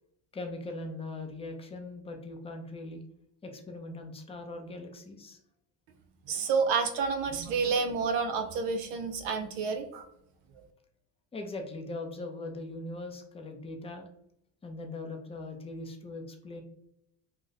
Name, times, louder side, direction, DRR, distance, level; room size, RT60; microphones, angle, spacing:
voice 1, 0.3-3.0 3.4-5.4 11.3-14.1 14.6-16.6, left 2 dB, 15° left, 3 dB, 0.5 m, -40 dB
voice 2, 6.3-10.1, right 5 dB, 60° right, 6 dB, 0.6 m, -29 dB
2.4 x 2.1 x 3.9 m, 0.77 s
supercardioid pair, 90°, 49 cm